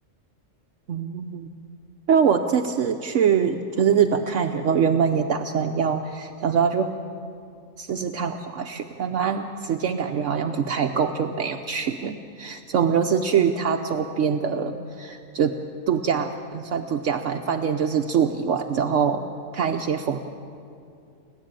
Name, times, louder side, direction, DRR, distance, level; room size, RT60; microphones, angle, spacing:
voice 1, 0.9-1.5 2.1-6.9 7.8-15.5 15.9-19.2 19.5-20.2, right 7 dB, 70° right, 4 dB, 1.1 m, -24 dB
30.0 x 12.0 x 9.0 m, 2.5 s
omnidirectional pair, 1.4 m